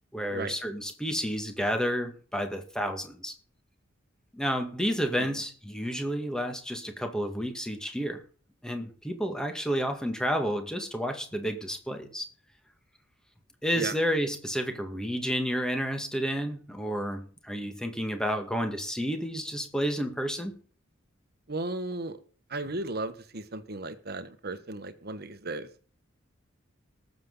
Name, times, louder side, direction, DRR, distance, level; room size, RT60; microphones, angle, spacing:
voice 1, 0.1-3.3 4.3-8.2 8.6-12.3 13.6-20.6, equal, 5° left, 5 dB, 1.9 m, -31 dB
voice 2, 21.5-22.2 22.5-25.7, right 2 dB, 55° right, 10 dB, 1.5 m, -35 dB
19.0 x 7.7 x 4.0 m, 0.43 s
head